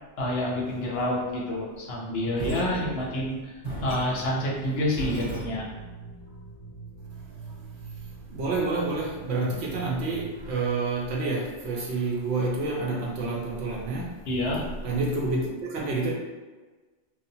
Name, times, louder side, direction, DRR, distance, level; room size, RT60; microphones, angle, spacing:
voice 1, 0.2-5.7 14.3-14.7, left 1 dB, 65° left, -3 dB, 0.7 m, -28 dB
sound 1, 2.4-5.9, right 1 dB, 5° left, 1.0 m, -37 dB
sound 2, 5.3-10.5, right 4 dB, 85° left, 0.3 m, -43 dB
voice 2, 8.3-14.1 14.8-16.1, right 3 dB, 65° right, -3 dB, 0.8 m, -28 dB
2.7 x 2.0 x 2.7 m, 1.3 s
omnidirectional pair, 1.2 m